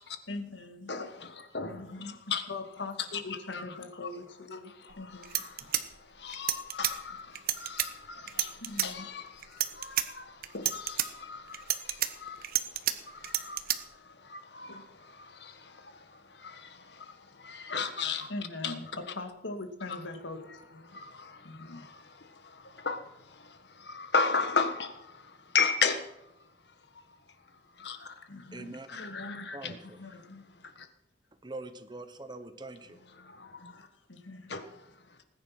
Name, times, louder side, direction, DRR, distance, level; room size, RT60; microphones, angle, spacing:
voice 1, 0.3-0.9 1.7-5.5 8.6-9.1 18.3-21.0 21.4-21.9 28.3-28.8 29.9-30.5 33.7-34.6, left 2 dB, 90° left, 1.9 m, -42 dB
voice 2, 0.9-2.5 3.1-3.6 4.0-4.1 4.5-4.6 5.0-18.3 18.6-18.7 20.8-26.3 26.7-26.8 27.1-27.2 27.8-28.3 28.9-29.8 30.6-30.9 33.2-33.9 34.5-35.1, left 5 dB, 60° left, 1.5 m, -36 dB
sound 1, 4.9-5.0 5.2-6.9 7.4-7.9 8.3-8.9 9.4-10.1 10.4-11.1 11.5-12.9 13.2-13.8, right 12 dB, 50° right, 1.1 m, -29 dB
voice 3, 28.5-29.1 29.5-30.0 31.4-33.0, right 2 dB, 25° right, 1.1 m, -43 dB
19.5 x 10.0 x 5.9 m
head